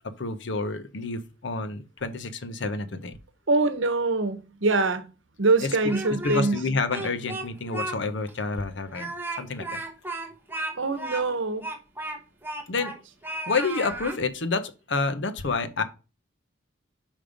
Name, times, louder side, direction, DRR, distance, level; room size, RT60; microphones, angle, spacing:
voice 1, 0.2-3.1 5.6-5.7 6.2-9.8 12.7-12.9 13.5-15.8, left 3 dB, 65° left, 0.8 m, -29 dB
voice 2, 3.5-5.1 5.4-6.6 10.8-11.7, right 3 dB, 70° right, 1.0 m, -24 dB
Speech, 5.7-6.6 6.9-8.0 8.3-8.4 8.9-13.0 13.2-14.2, right 2 dB, 10° right, 0.9 m, -34 dB
5.3 x 5.2 x 5.0 m
head